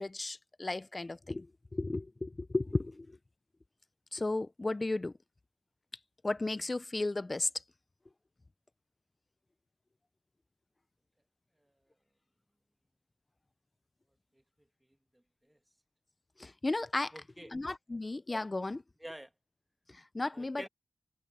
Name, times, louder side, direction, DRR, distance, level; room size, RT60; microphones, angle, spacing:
voice 1, 0.0-1.5 1.7-3.2 4.1-5.1 6.2-7.5 16.4-17.1 17.5-18.8 19.9-20.7, left 2 dB, 30° left, 0.7 m, -34 dB
voice 2, 15.1-15.6 17.1-17.5 19.0-19.3 20.3-20.7, right 1 dB, 10° right, 1.6 m, -49 dB
cardioid pair, 60°, 0 cm